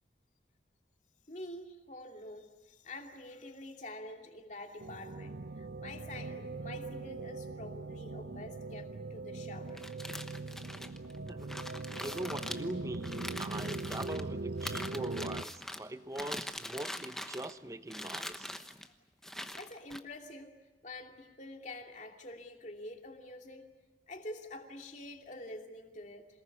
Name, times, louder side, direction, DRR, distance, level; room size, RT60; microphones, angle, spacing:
voice 1, 1.3-9.8 10.3-10.4 19.5-20.5 20.8-23.6 24.1-26.3, left 1 dB, 40° left, 3 dB, 2.7 m, -47 dB
sound 1, 4.8-15.4, right 3 dB, 70° right, 0.8 m, -41 dB
sound 2, 9.7-14.2 14.6-15.8 16.1-17.6 17.9-18.9 19.2-20.0, left 1 dB, 5° left, 1.1 m, -42 dB
voice 2, 11.3-11.6 11.9-18.5, right 1 dB, 15° right, 12 dB, 0.8 m, -42 dB
27.5 x 19.5 x 9.7 m, 1.1 s
head